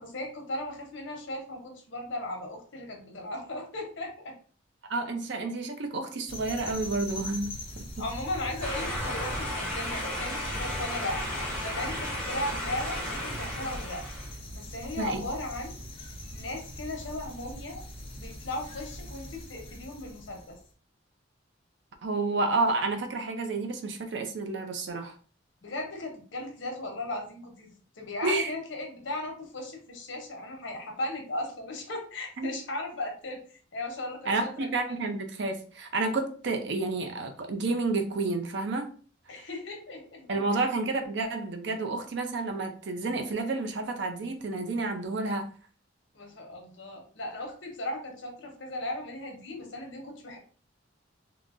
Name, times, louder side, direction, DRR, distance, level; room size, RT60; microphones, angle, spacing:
voice 1, 0.0-4.3 8.0-14.0 14.5-15.8 16.3-17.8 18.2-20.6 25.6-33.4 33.7-34.7 39.3-40.6 46.1-50.4, left 1 dB, 75° left, 2 dB, 0.9 m, -37 dB
voice 2, 4.9-7.6 15.0-15.2 22.0-25.1 28.2-28.5 32.4-32.5 34.3-38.9 40.3-45.5, right 3 dB, 65° right, 6 dB, 0.5 m, -30 dB
sound 1, 6.3-20.6, equal, 30° left, 0.6 m, -41 dB
sound 2, 8.6-14.3, left 1 dB, 5° left, 1.2 m, -34 dB
3.7 x 2.0 x 2.4 m, 0.41 s
head